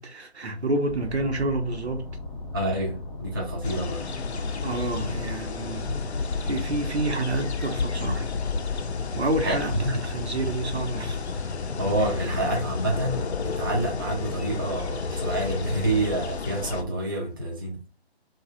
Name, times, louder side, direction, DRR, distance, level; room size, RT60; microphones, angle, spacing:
voice 1, 0.0-2.1 4.6-6.1 6.4-8.3 9.2-11.2, right 2 dB, 85° right, 0.8 m, -29 dB
sound 1, 0.9-16.9, left 2 dB, 35° left, 0.5 m, -38 dB
voice 2, 2.5-4.1 9.4-10.0 11.8-17.8, right 1 dB, 20° right, 0.4 m, -28 dB
sound 2, 3.6-16.8, left 5 dB, 90° left, 0.5 m, -32 dB
2.7 x 2.3 x 2.5 m
figure-of-eight pair, 140°, 32 cm